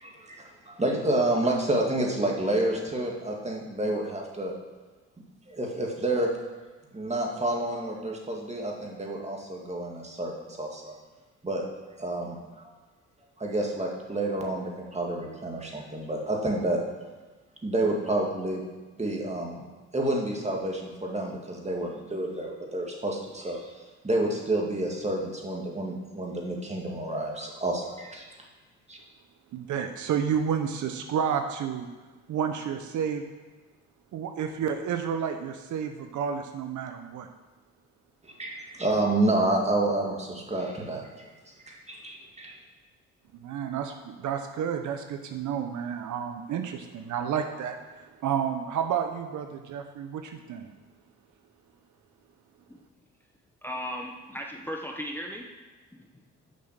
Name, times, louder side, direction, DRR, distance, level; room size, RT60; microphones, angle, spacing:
voice 1, 0.0-4.5 5.5-6.3 6.9-10.9 11.4-11.6 12.0-12.7 13.4-16.8 17.6-18.6 19.0-19.6 19.9-23.6 24.0-28.3 28.9-29.0 38.2-41.3 41.7-42.6, right 1 dB, 20° right, -1 dB, 2.3 m, -29 dB
voice 2, 29.5-31.9 32.3-33.2 34.1-37.3 43.4-50.7, right 8 dB, 65° right, 6 dB, 0.8 m, -30 dB
voice 3, 53.6-55.5 55.9-56.0, equal, 5° left, 1 dB, 1.0 m, -36 dB
7.5 x 5.6 x 6.6 m, 1.3 s
supercardioid pair, 70°, 32 cm